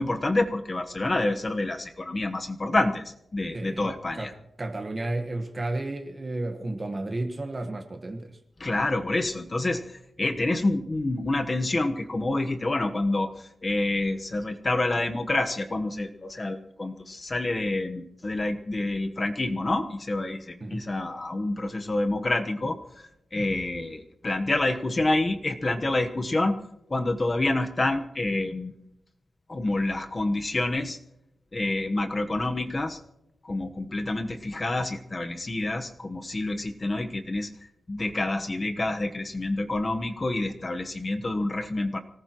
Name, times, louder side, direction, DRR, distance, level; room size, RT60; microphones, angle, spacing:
voice 1, 0.0-4.3 8.6-26.6 26.9-28.7 29.5-31.0 31.5-33.0 33.4-42.0, left 2 dB, 30° left, 6 dB, 1.1 m, -28 dB
voice 2, 3.5-4.3 4.6-8.4 20.6-20.8, right 2 dB, 30° right, 6 dB, 1.3 m, -32 dB
25.0 x 18.5 x 3.0 m, 0.83 s
wide cardioid pair, 140°, 0 cm